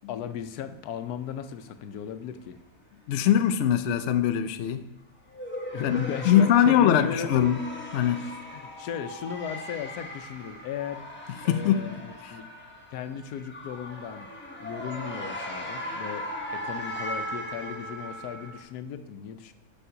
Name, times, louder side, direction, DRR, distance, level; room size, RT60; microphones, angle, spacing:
voice 1, 0.1-2.6 5.7-7.4 8.1-11.0 11.4-12.5 12.9-14.3 14.6-19.5, left 8 dB, 85° left, 1.2 m, -37 dB
voice 2, 3.1-4.8 5.8-7.6 7.9-8.2 11.5-12.3, left 10 dB, 65° left, 0.7 m, -22 dB
sound 1, 5.3-18.6, equal, 10° left, 1.1 m, -38 dB
6.9 x 5.5 x 5.0 m
omnidirectional pair, 1.6 m